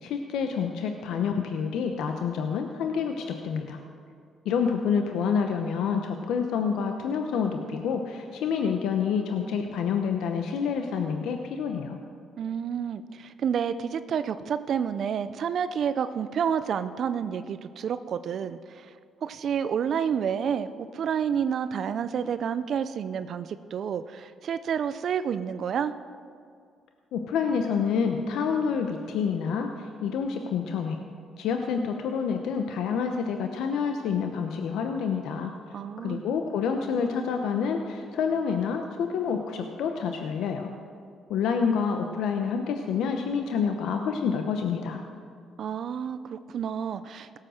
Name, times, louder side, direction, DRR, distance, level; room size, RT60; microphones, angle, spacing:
voice 1, 0.0-3.8 4.4-12.0 27.1-31.0 31.4-35.5 36.0-40.7 41.3-45.0, left 6 dB, 85° left, 5 dB, 0.8 m, -28 dB
voice 2, 12.4-18.9 19.2-25.9 35.7-36.2 45.6-47.4, right 7 dB, 60° right, 12 dB, 0.5 m, -29 dB
17.5 x 7.6 x 6.4 m, 2.3 s
cardioid pair, 90°, 0 cm